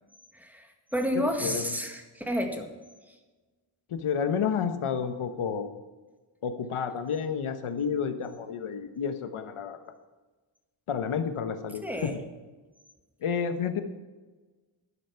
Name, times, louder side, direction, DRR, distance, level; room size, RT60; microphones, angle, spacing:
voice 1, 0.3-2.7 11.8-12.1, equal, 5° right, 4 dB, 1.8 m, -31 dB
voice 2, 1.1-1.7 3.9-5.7 6.4-9.8 10.9-12.1 13.2-13.8, left 7 dB, 80° left, 8 dB, 1.2 m, -30 dB
11.5 x 11.5 x 5.7 m, 1.3 s
wide cardioid pair, 130°, 50 cm